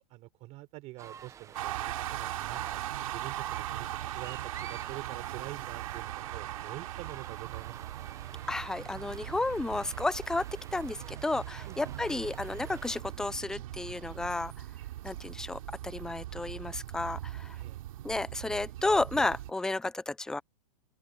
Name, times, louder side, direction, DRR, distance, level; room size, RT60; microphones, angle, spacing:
voice 1, 0.0-3.9 4.1-8.1 11.6-12.0 17.5-17.8, right 19 dB, 35° right, 4.1 m, -46 dB
sound 1, 1.0-13.0, right 8 dB, 15° right, 1.0 m, -50 dB
sound 2, 1.5-19.5, right 13 dB, 65° right, 3.4 m, -40 dB
voice 2, 8.5-14.5 15.0-17.6 18.0-20.4, left 2 dB, 5° left, 0.4 m, -32 dB
open air
hypercardioid pair, 140°, 19 cm